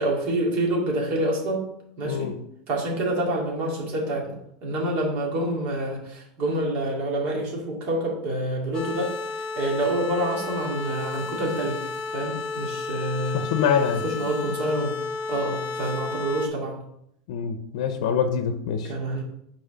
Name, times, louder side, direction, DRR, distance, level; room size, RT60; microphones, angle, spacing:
voice 1, 0.0-1.7 2.0-2.3 2.7-11.8 12.1-13.4 14.0-15.0 15.3-16.8 18.9-19.2, right 1 dB, 45° right, -2 dB, 2.2 m, -27 dB
voice 2, 2.0-2.4 13.3-14.0 17.3-18.9, left 7 dB, 70° left, 8 dB, 0.7 m, -25 dB
sound 1, 8.7-16.5, left 4 dB, 25° left, 0.9 m, -32 dB
6.3 x 4.2 x 5.6 m, 0.75 s
supercardioid pair, 150°, 3 cm